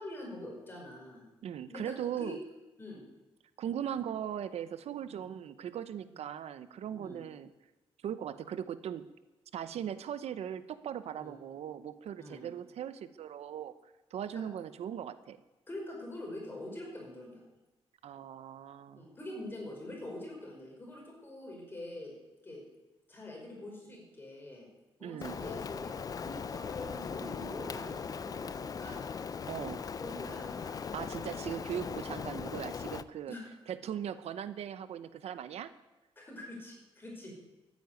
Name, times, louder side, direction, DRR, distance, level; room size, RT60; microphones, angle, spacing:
voice 1, 0.0-1.3 1.7-2.4 2.8-3.0 5.0-5.2 6.9-7.2 11.1-11.3 12.2-12.5 14.3-14.4 15.7-17.4 19.0-22.1 22.4-22.6 23.1-24.7 25.0-25.9 26.2-29.2 30.0-30.8 33.3-33.5 36.2-37.3, left 1 dB, 20° left, -1 dB, 5.2 m, -45 dB
voice 2, 1.4-2.4 3.6-7.5 8.0-9.1 9.5-13.7 14.1-15.4 18.0-19.1 25.0-25.4 29.5-29.8 30.9-33.4 33.7-35.7, right 9 dB, 85° right, 13 dB, 0.8 m, -39 dB
Rain, 25.2-33.0, left 6 dB, 35° left, 0.5 m, -39 dB
14.0 x 9.4 x 9.5 m, 1.1 s
wide cardioid pair, 170°, 11 cm